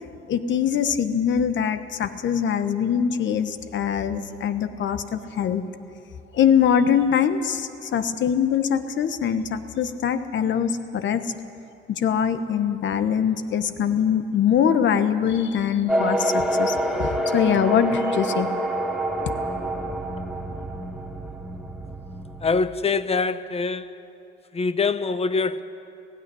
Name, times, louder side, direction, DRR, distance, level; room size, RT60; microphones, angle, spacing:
voice 1, 0.3-5.6 6.3-11.3 11.9-18.5, left 8 dB, 70° left, 1.2 m, -23 dB
sound 1, 15.9-22.6, right 1 dB, ahead, 1.6 m, -27 dB
voice 2, 22.4-24.1 24.5-25.6, left 4 dB, 30° left, 0.9 m, -24 dB
16.5 x 16.0 x 9.9 m
cardioid pair, 90°, 20 cm